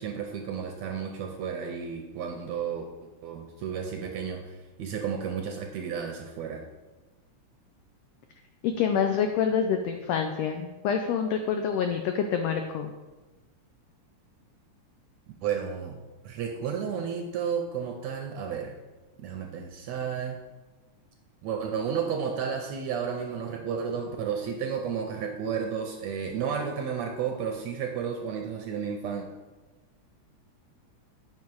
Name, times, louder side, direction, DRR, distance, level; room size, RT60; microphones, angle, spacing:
voice 1, 0.0-2.9 3.2-4.4 4.8-6.6 15.4-18.7 19.2-20.4 21.4-29.3, right 7 dB, 75° right, 3 dB, 1.7 m, -32 dB
voice 2, 8.6-12.9, left 7 dB, 90° left, 5 dB, 1.4 m, -27 dB
8.8 x 5.5 x 4.7 m, 1.2 s
omnidirectional pair, 3.6 m